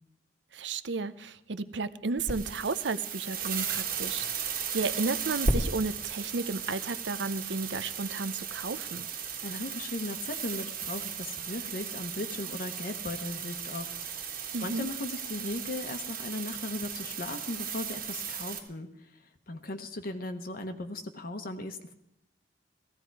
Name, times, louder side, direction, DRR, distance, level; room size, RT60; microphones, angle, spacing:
voice 1, 0.5-9.1 14.5-14.9, right 3 dB, 70° right, 13 dB, 0.7 m, -33 dB
sound 1, 2.2-18.6, right 5 dB, 55° right, 1.8 m, -35 dB
voice 2, 9.4-13.9 14.2-21.9, left 2 dB, 50° left, 5 dB, 1.0 m, -37 dB
15.5 x 15.5 x 4.7 m, 0.82 s
head